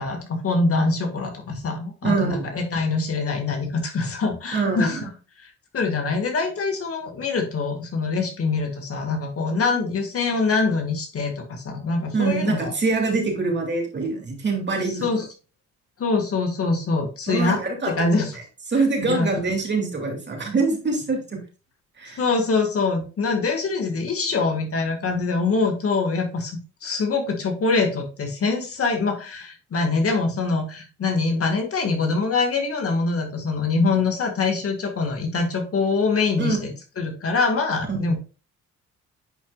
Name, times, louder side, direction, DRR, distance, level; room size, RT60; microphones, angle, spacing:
voice 1, 0.0-5.1 5.4-12.7 14.8-15.3 16.0-17.6 17.9-18.4 19.0-19.3 22.2-38.2, left 4 dB, 50° left, 3 dB, 2.0 m, -24 dB
voice 2, 2.0-2.4 4.5-5.0 12.1-15.1 17.3-18.3 18.7-21.4 22.0-22.2 36.4-36.7 38.1-38.2, right 3 dB, 35° right, 1 dB, 2.5 m, -24 dB
10.0 x 4.7 x 2.4 m, 0.34 s
cardioid pair, 90°, 30 cm